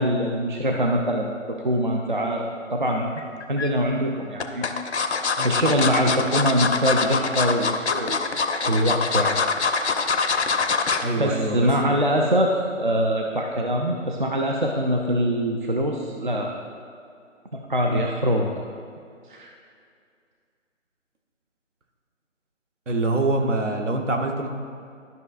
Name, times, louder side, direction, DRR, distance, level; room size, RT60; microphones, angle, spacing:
voice 1, 0.0-2.5 2.7-4.7 5.2-8.2 8.7-9.4 10.8-16.5 17.7-18.5 19.3-19.5, equal, 40° right, 1 dB, 0.4 m, -24 dB
sound 1, 3.2-3.7 4.4-11.1 11.5-11.7 12.0-12.1, left 4 dB, 60° left, 0.6 m, -24 dB
voice 2, 11.0-11.7 17.9-18.0 22.9-24.5, right 2 dB, 65° right, 3 dB, 1.1 m, -25 dB
12.0 x 5.5 x 2.5 m, 2.3 s
figure-of-eight pair, 160°, 39 cm